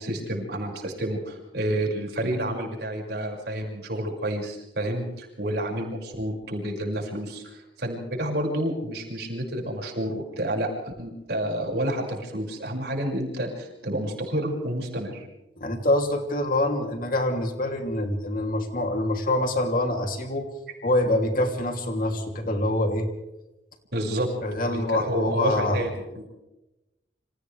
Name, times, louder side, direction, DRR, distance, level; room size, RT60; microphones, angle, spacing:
voice 1, 0.0-15.3 23.9-24.3 24.7-26.3, right 1 dB, 55° right, 0 dB, 6.1 m, -29 dB
voice 2, 15.6-20.5 20.8-23.1 24.4-25.9, left 1 dB, 45° left, 3 dB, 3.0 m, -25 dB
29.0 x 26.5 x 3.4 m, 0.95 s
head